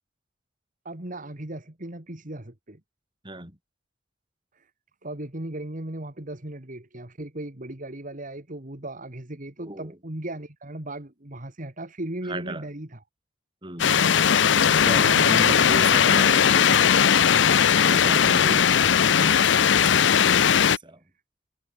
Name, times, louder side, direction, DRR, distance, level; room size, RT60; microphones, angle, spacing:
voice 1, 0.8-2.8 4.5-4.7 5.0-13.0 14.9-15.7 17.8-18.9, right 1 dB, 45° right, 2.4 m, -36 dB
voice 2, 3.2-3.6 9.6-10.0 12.2-12.7 13.6-14.3 14.8-16.9 19.2-20.3 20.7-21.0, right 1 dB, 25° right, 6.8 m, -36 dB
sound 1, 13.8-20.8, left 8 dB, 70° left, 0.6 m, -18 dB
head